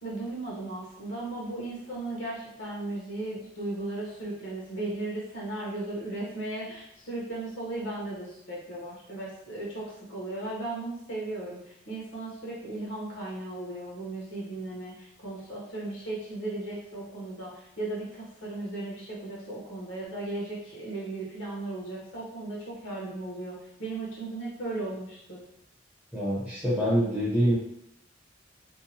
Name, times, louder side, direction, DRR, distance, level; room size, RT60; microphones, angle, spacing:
voice 1, 0.0-25.4, right 2 dB, 75° left, -5 dB, 1.0 m, -36 dB
voice 2, 26.1-27.6, equal, 5° right, -8 dB, 0.8 m, -25 dB
2.7 x 2.2 x 2.8 m, 0.78 s
head